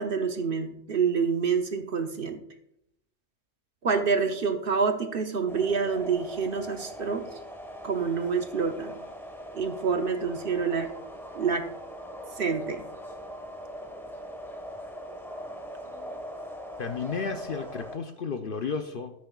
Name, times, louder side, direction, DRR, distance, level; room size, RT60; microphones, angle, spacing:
voice 1, 0.0-2.4 3.8-7.3 7.8-9.0 9.5-10.9 11.4-11.7 12.4-12.8, right 5 dB, 50° right, 6 dB, 0.9 m, -27 dB
sound 1, 5.5-18.0, equal, ahead, 1.1 m, -41 dB
voice 2, 16.8-19.1, left 5 dB, 55° left, 7 dB, 0.6 m, -32 dB
13.0 x 9.6 x 2.3 m, 0.80 s
omnidirectional pair, 1.3 m